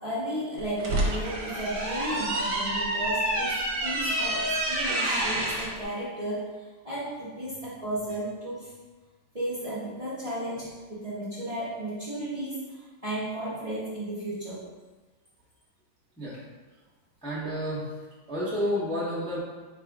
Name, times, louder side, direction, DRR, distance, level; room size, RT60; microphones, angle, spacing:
voice 1, 0.0-6.4 6.8-8.7 9.3-12.6 13.0-14.6, right 1 dB, 30° right, -9 dB, 0.7 m, -34 dB
sound 1, 0.6-5.7, right 1 dB, 65° right, 1.4 m, -28 dB
voice 2, 17.2-17.8 18.3-19.4, equal, 5° left, -9 dB, 0.3 m, -30 dB
4.6 x 2.5 x 4.6 m, 1.3 s
omnidirectional pair, 2.1 m